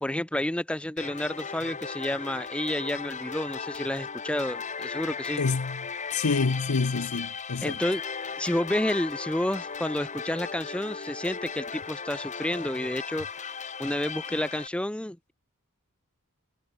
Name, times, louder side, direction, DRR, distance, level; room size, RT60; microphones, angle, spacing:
voice 1, 0.0-5.4 7.6-8.0 8.4-13.3 13.8-15.3, left 1 dB, 5° left, 0.5 m, -30 dB
sound 1, 1.0-14.7, left 5 dB, 35° left, 2.2 m, -36 dB
voice 2, 5.4-7.8, left 4 dB, 75° left, 0.8 m, -28 dB
head